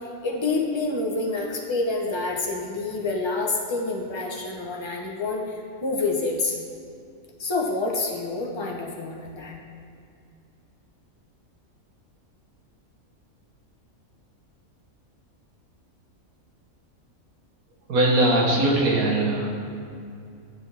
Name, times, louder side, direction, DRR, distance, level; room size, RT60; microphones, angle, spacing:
voice 1, 0.2-6.6 7.4-9.5, left 3 dB, 25° left, -1 dB, 0.8 m, -27 dB
voice 2, 17.9-19.5, right 1 dB, 80° right, -1 dB, 1.6 m, -20 dB
9.8 x 6.8 x 3.4 m, 2.5 s
omnidirectional pair, 1.5 m